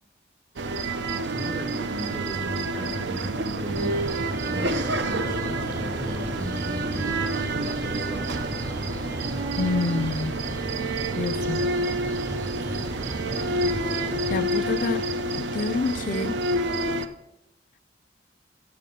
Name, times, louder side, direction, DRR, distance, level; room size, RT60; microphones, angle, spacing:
sound 1, 0.6-17.1, right 2 dB, 80° right, 0.6 m, -28 dB
voice 1, 1.3-4.0 4.4-8.3 13.4-13.7 13.9-14.3, right 1 dB, 55° right, 2.0 m, -36 dB
sound 2, 3.7-14.5, equal, 20° right, 0.6 m, -35 dB
voice 2, 9.6-10.4 11.2-11.6 14.3-15.1 15.4-16.4, left 4 dB, 50° left, 0.4 m, -27 dB
9.2 x 7.2 x 5.2 m
head